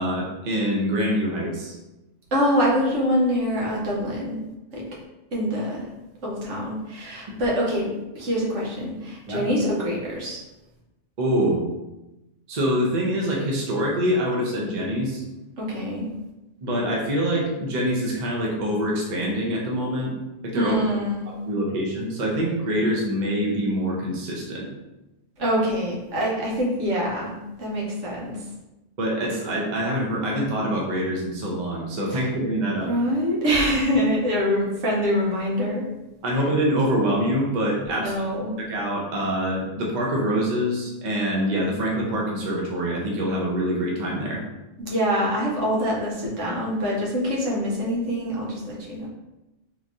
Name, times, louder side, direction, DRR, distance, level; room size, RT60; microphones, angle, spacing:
voice 1, 0.0-1.8 9.3-9.4 11.2-11.6 12.5-15.2 16.6-20.1 20.4-20.7 21.5-24.7 29.0-32.9 36.2-38.1 38.6-44.4, equal, 45° right, -2 dB, 0.7 m, -25 dB
voice 2, 2.3-4.4 4.7-4.9 5.3-5.9 6.2-10.4 15.6-16.1 20.6-21.3 25.4-27.3 27.6-28.4 32.1-32.3 32.9-35.9 37.9-38.6 44.8-49.1, equal, 80° right, -4 dB, 1.3 m, -25 dB
3.5 x 2.9 x 2.6 m, 0.99 s
omnidirectional pair, 1.2 m